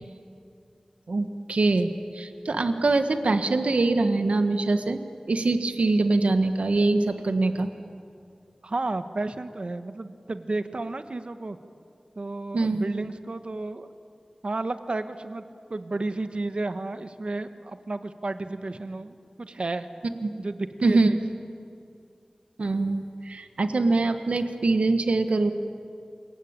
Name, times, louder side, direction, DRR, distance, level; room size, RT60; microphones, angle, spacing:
voice 1, 1.1-5.0 5.3-7.7 12.5-12.8 20.2-20.3 20.8-21.1 22.6-25.5, right 3 dB, 85° right, 8 dB, 1.5 m, -23 dB
voice 2, 8.6-11.6 12.2-13.9 14.4-15.4 15.7-19.9 20.4-21.2, right 2 dB, 60° right, 10 dB, 1.4 m, -32 dB
28.0 x 23.0 x 8.9 m, 2.4 s
wide cardioid pair, 60°, 2 cm